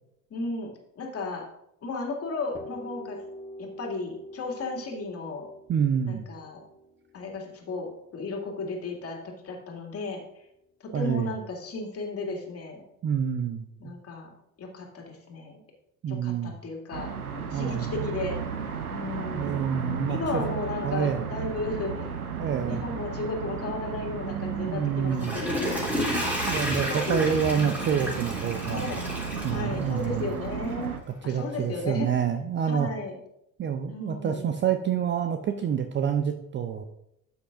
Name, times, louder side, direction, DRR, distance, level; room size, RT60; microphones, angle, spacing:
voice 1, 0.3-1.4 1.8-3.2 3.6-5.5 6.1-6.6 7.1-10.2 10.8-12.8 13.8-14.3 14.6-15.6 16.1-17.1 17.5-18.4 18.9-19.7 20.1-22.1 22.5-25.8 26.4-27.3 27.6-27.8 28.7-29.0 29.5-30.9 31.2-32.1 32.7-33.1 33.9-34.5, left 3 dB, 35° left, 1 dB, 2.4 m, -34 dB
sound 1, 2.5-10.3, equal, 15° left, 1.6 m, -46 dB
voice 2, 5.7-6.3 10.9-11.3 13.0-13.9 16.0-16.6 17.5-17.9 19.3-20.4 20.8-21.2 22.4-22.8 24.2-25.4 26.4-28.9 29.4-30.3 31.3-32.9 33.6-36.8, right 8 dB, 25° right, 8 dB, 0.7 m, -27 dB
sound 2, 16.9-31.0, right 6 dB, 85° right, 0.9 m, -34 dB
Water / Toilet flush, 25.0-30.3 30.7-30.8, equal, 5° right, 3.4 m, -31 dB
12.5 x 8.0 x 2.6 m, 0.79 s
figure-of-eight pair, 65°, 43 cm